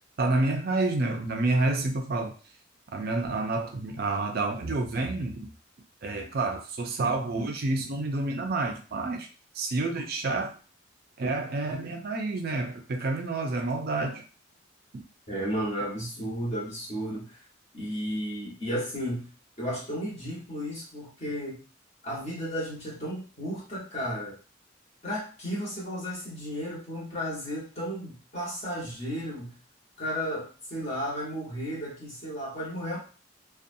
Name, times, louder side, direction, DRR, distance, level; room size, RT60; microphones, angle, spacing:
voice 1, 0.2-2.3 2.9-5.4 6.0-9.3 9.5-10.5 11.2-14.2 14.9-15.0, right 2 dB, 50° right, 3 dB, 0.4 m, -29 dB
voice 2, 15.3-17.3 17.7-19.3 19.6-21.6 22.0-24.4 25.0-29.5 30.0-33.0, equal, 35° left, -6 dB, 1.2 m, -33 dB
2.6 x 2.3 x 2.6 m, 0.36 s
head